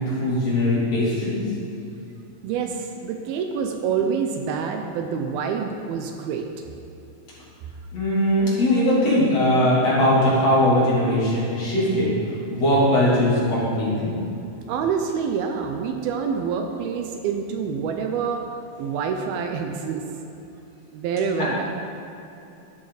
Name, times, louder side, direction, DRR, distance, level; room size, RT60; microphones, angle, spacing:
voice 1, 0.0-1.5 7.9-12.1 12.5-14.2 21.4-21.5, left 1 dB, 40° left, -8 dB, 3.9 m, -20 dB
voice 2, 2.4-6.5 14.7-18.5 18.8-20.1 20.9-21.7, right 6 dB, 80° right, 4 dB, 2.5 m, -27 dB
12.5 x 12.0 x 4.1 m, 2.9 s
omnidirectional pair, 4.5 m